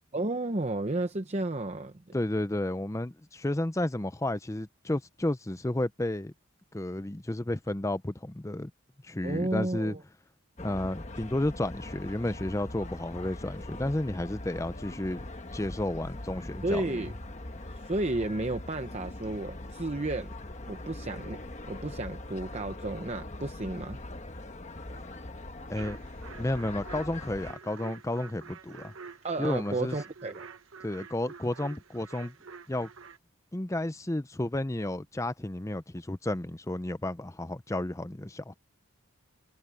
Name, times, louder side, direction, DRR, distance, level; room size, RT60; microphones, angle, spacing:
voice 1, 0.1-2.1 9.2-10.0 16.6-17.1 17.7-20.3 20.7-21.4 21.7-24.0 29.2-30.5, right 2 dB, 30° right, 0.7 m, -32 dB
voice 2, 2.1-6.3 6.7-8.7 9.0-10.0 10.6-15.3 15.5-16.9 25.7-26.0 26.4-28.9 29.4-30.0 30.8-32.3 32.7-32.9 33.5-38.5, left 1 dB, 15° left, 0.6 m, -32 dB
sound 1, 10.6-27.5, left 1 dB, 30° left, 1.2 m, -42 dB
sound 2, 25.7-33.2, right 5 dB, 65° right, 1.1 m, -48 dB
head